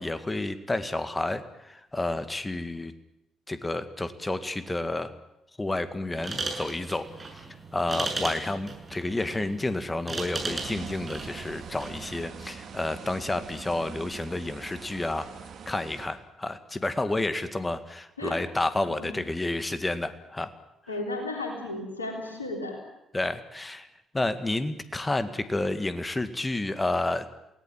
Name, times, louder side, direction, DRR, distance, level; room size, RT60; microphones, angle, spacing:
voice 1, 0.0-2.9 3.5-5.1 5.6-7.1 7.7-15.3 15.7-20.5 23.1-23.9 24.1-27.3, left 2 dB, 20° left, 11 dB, 2.0 m, -30 dB
sound 1, 6.1-12.0, right 3 dB, 30° right, 7.3 m, -36 dB
sound 2, 10.4-16.1, right 6 dB, 55° right, 2.3 m, -43 dB
voice 2, 20.9-22.8, left 2 dB, 90° left, 2 dB, 3.5 m, -34 dB
28.5 x 18.0 x 7.5 m, 0.85 s
figure-of-eight pair, 45°, 0 cm